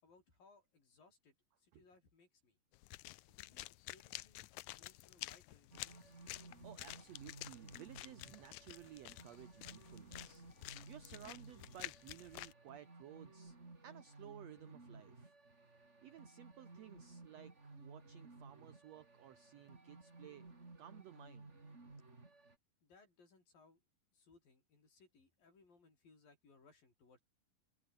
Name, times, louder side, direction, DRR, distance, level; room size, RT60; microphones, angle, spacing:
voice 1, 0.0-2.6 3.3-6.2 22.8-23.8 24.1-27.2, left 4 dB, 75° left, 9.4 m, -67 dB
sound 1, 2.7-12.5, left 18 dB, 90° left, 1.7 m, -51 dB
sound 2, 5.7-22.6, right 3 dB, 20° right, 3.3 m, -57 dB
voice 2, 6.6-13.6 13.8-15.3 16.0-20.5 20.8-21.5, right 12 dB, 75° right, 1.5 m, -56 dB
omnidirectional pair, 4.1 m